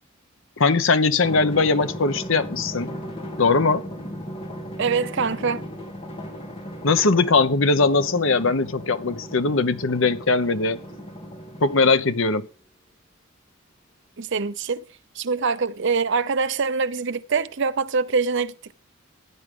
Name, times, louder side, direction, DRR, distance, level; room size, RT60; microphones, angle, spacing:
voice 1, 0.6-2.9 3.4-3.9 6.8-10.8 11.6-12.4, left 3 dB, 65° left, 0.9 m, -20 dB
Drum, 1.2-12.2, equal, 25° left, 2.5 m, -36 dB
voice 2, 4.8-5.6 14.2-14.9 15.1-18.7, right 5 dB, 55° right, 0.7 m, -24 dB
15.0 x 9.6 x 3.8 m
head